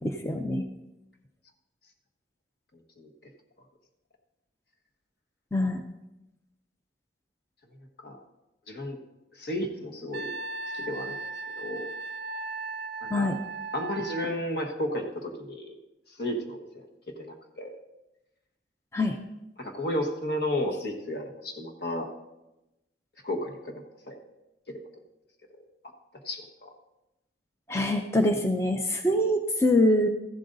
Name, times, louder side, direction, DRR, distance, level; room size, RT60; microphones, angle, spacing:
voice 1, 0.0-0.6 5.5-5.8 13.1-13.4 18.9-19.2 27.7-30.1, left 1 dB, 15° left, 5 dB, 0.5 m, -24 dB
voice 2, 8.7-9.0 9.3-10.3 10.7-11.2 11.6-11.8 13.0-13.3 13.7-15.8 16.2-16.8 17.2-17.8 19.6-22.1 23.2-23.7 24.1-24.2 26.2-26.7, left 1 dB, 60° left, 2 dB, 1.4 m, -33 dB
Wind instrument woodwind instrument, 10.1-14.3, right 3 dB, 55° right, 0.5 m, -37 dB
14.5 x 11.5 x 2.7 m, 0.97 s
head